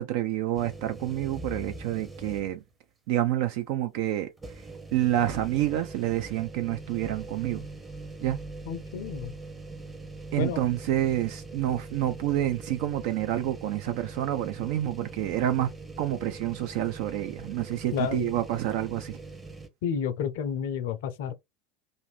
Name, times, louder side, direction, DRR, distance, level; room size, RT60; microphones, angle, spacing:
voice 1, 0.0-2.6 3.1-4.3 4.9-7.6 8.2-8.4 10.3-15.7 16.0-19.2, right 13 dB, 55° right, 0.3 m, -28 dB
sound 1, 0.5-2.7 3.1-3.2 4.4-19.7, right 3 dB, 15° right, 0.7 m, -42 dB
voice 2, 8.7-9.3 10.4-10.6 17.9-18.3 19.8-21.3, left 7 dB, 60° left, 0.5 m, -30 dB
2.6 x 2.5 x 3.2 m
figure-of-eight pair, 70°, 0 cm